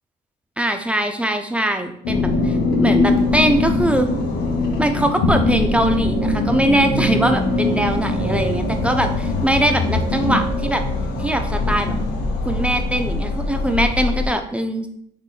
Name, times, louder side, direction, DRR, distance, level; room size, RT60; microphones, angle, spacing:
voice 1, 0.6-4.1 4.8-10.9 11.2-11.9 12.5-14.9, right 1 dB, 5° right, 6 dB, 0.3 m, -21 dB
sound 1, 2.0-14.3, left 2 dB, 70° left, 0.7 m, -21 dB
Drum, 8.2-13.2, right 2 dB, 75° right, 1.2 m, -37 dB
3.6 x 3.6 x 2.4 m, 0.68 s
cardioid pair, 110°, 17 cm